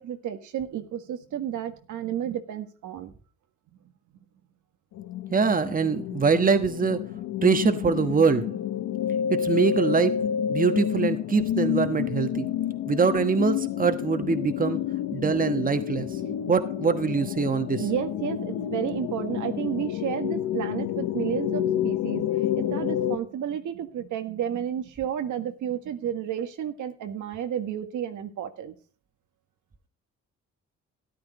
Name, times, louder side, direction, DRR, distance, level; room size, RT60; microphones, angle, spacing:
voice 1, 0.0-3.1 10.1-10.2 12.4-12.6 15.2-15.4 15.9-16.3 17.8-22.2 22.5-28.8, right 10 dB, 75° right, 1.6 m, -32 dB
sound 1, 4.9-23.2, left 10 dB, 85° left, 1.0 m, -29 dB
voice 2, 5.3-7.0 7.4-8.5 9.3-10.2 10.5-12.4 12.9-14.8 15.1-16.1 16.5-17.8, right 5 dB, 30° right, 1.3 m, -23 dB
13.5 x 11.0 x 4.0 m
cardioid pair, 90°, 30 cm